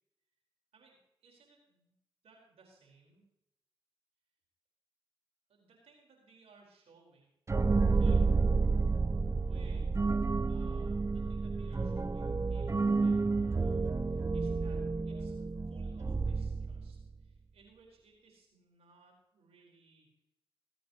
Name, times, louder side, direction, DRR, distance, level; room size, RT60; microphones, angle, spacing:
voice 1, 1.2-1.9 2.2-3.3 5.5-7.3 7.9-8.5 9.4-10.0 10.3-20.2, right 4 dB, 85° right, 0 dB, 4.9 m, -63 dB
sound 1, 7.5-17.1, right 4 dB, 30° right, 0.5 m, -30 dB
25.0 x 9.4 x 3.2 m, 0.82 s
cardioid pair, 50°, 10 cm